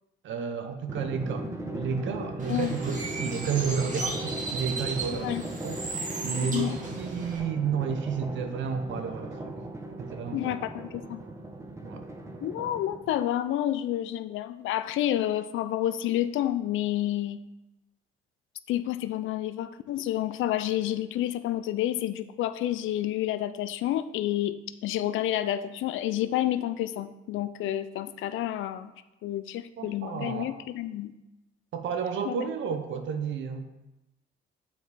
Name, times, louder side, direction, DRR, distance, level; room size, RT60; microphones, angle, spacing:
voice 1, 0.2-5.4 5.6-9.6 10.0-10.6 11.8-12.0 29.8-30.6 31.7-33.6, right 6 dB, 70° right, 7 dB, 0.8 m, -32 dB
Drum, 0.9-13.3, right 1 dB, 15° right, 0.8 m, -38 dB
Bird, 2.4-7.4, right 3 dB, 40° right, 1.9 m, -36 dB
voice 2, 5.1-5.4 6.5-6.8 10.3-11.2 12.4-17.4 18.7-24.5 24.8-28.9 29.2-31.1 32.3-32.4, left 13 dB, 80° left, 12 dB, 0.4 m, -29 dB
7.1 x 4.5 x 4.1 m, 0.97 s
cardioid pair, 90°, 20 cm